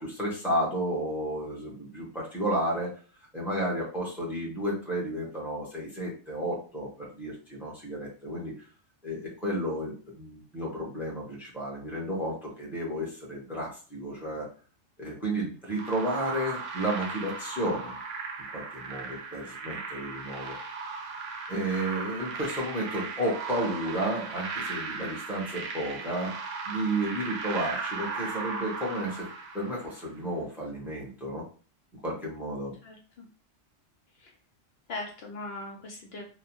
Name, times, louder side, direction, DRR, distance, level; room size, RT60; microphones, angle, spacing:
voice 1, 0.0-2.9 3.3-8.5 9.0-14.5 15.0-18.0 18.5-20.6 21.5-26.4 26.7-29.3 29.5-31.4 32.0-32.7, right 1 dB, ahead, -3 dB, 0.7 m, -32 dB
sound 1, 15.7-30.1, right 4 dB, 85° right, 1.0 m, -37 dB
voice 2, 32.8-33.2 34.2-34.3 34.9-36.2, left 2 dB, 65° left, 0 dB, 0.8 m, -39 dB
2.8 x 2.1 x 2.9 m, 0.39 s
omnidirectional pair, 1.3 m